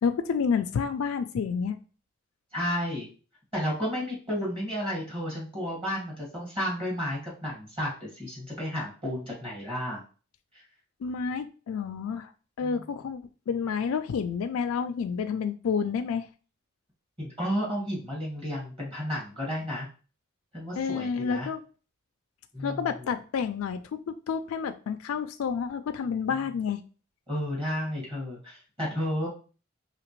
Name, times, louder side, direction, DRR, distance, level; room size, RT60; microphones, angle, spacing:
voice 1, 0.0-1.8 11.0-12.3 12.6-16.3 20.8-21.6 22.6-26.8, left 6 dB, 90° left, 8 dB, 0.3 m, -29 dB
voice 2, 2.5-3.1 3.5-10.0 10.5-10.6 12.6-12.8 17.2-19.9 20.5-21.5 22.5-22.9 27.3-29.3, equal, 25° right, -4 dB, 1.9 m, -32 dB
4.9 x 2.9 x 3.0 m, 0.36 s
head